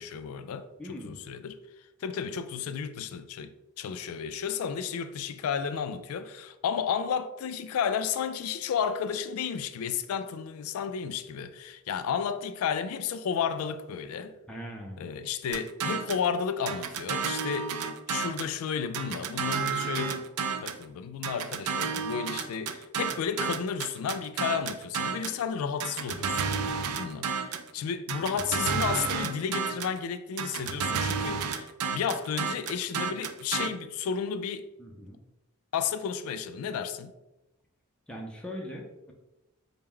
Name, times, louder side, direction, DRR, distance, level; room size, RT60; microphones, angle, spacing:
voice 1, 0.0-1.6 2.0-14.3 15.0-20.2 20.6-26.4 26.7-34.7 35.7-37.1, left 7 dB, 80° left, 0.3 m, -32 dB
voice 2, 0.8-1.2 14.5-15.0 34.8-35.2 38.1-39.1, equal, 5° left, 0.4 m, -40 dB
sound 1, 15.5-16.3 16.7-18.5 18.9-20.8 21.2-25.4 25.8-27.7 28.1-30.0 30.4-33.7, right 6 dB, 90° right, 0.4 m, -31 dB
4.4 x 2.0 x 3.6 m
head